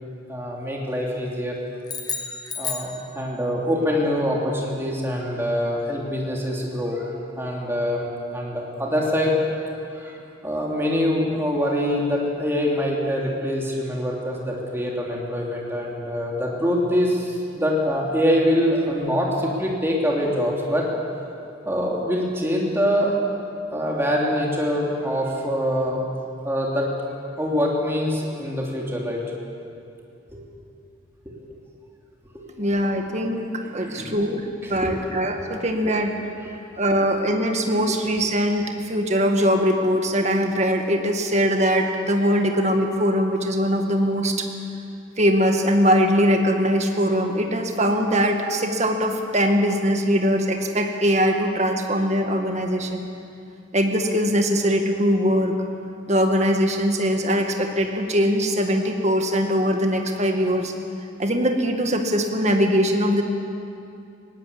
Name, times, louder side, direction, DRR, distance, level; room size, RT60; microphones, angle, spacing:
voice 1, 0.3-1.5 2.6-9.4 9.9-10.2 10.4-20.9 21.6-23.3 23.7-26.0 26.4-26.9 27.4-29.2 30.3-30.4 31.2-31.3 32.3-32.4 33.6-34.1 34.6-34.9 35.8-35.9, equal, 10° right, -3 dB, 3.1 m, -24 dB
sound 1, 1.8-3.6, left 6 dB, 20° left, 1.2 m, -32 dB
voice 2, 32.6-33.5 33.7-34.4 34.7-36.1 36.8-44.5 45.2-53.1 53.7-55.5 56.1-60.7 61.2-63.2, equal, 35° right, 4 dB, 1.8 m, -21 dB
20.0 x 17.5 x 8.4 m, 2.5 s
head